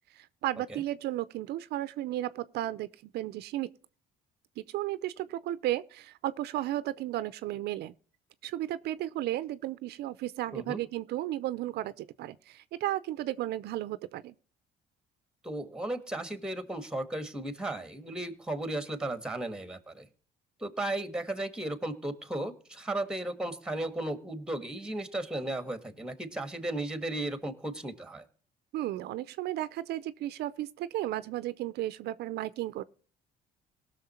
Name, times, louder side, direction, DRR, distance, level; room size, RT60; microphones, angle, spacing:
voice 1, 0.1-3.7 4.6-7.9 8.4-14.3 28.7-32.8, right 14 dB, 75° right, 0.6 m, -34 dB
voice 2, 15.4-20.1 20.6-28.2, right 1 dB, 5° right, 1.6 m, -35 dB
18.5 x 6.5 x 4.3 m
cardioid pair, 110°, 17 cm